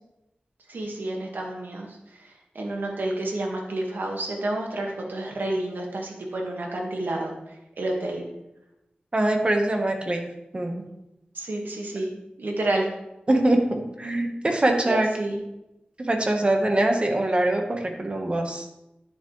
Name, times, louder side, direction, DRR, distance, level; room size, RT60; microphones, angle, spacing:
voice 1, 0.7-8.2 11.3-12.1 12.4-12.9 14.8-15.4, right 1 dB, 85° right, 0 dB, 1.8 m, -30 dB
voice 2, 9.1-10.3 10.5-10.9 13.3-15.1 16.0-18.7, right 1 dB, 35° right, 3 dB, 1.3 m, -23 dB
10.5 x 7.3 x 3.2 m, 0.90 s
wide cardioid pair, 85°, 3 cm